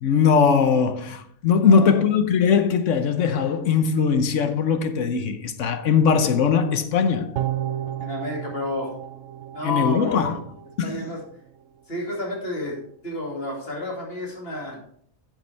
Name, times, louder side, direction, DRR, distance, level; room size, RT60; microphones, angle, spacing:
voice 1, 0.0-7.4 9.6-10.3 10.8-11.0, left 6 dB, 65° left, 1.1 m, -20 dB
voice 2, 1.6-2.1 8.0-8.9 9.5-10.4 10.8-11.2 11.9-12.8 13.0-14.8, left 1 dB, 45° left, 2.6 m, -30 dB
sound 1, 7.4-10.7 11.1-11.2, right 12 dB, 65° right, 0.9 m, -32 dB
10.5 x 8.0 x 3.4 m
omnidirectional pair, 1.5 m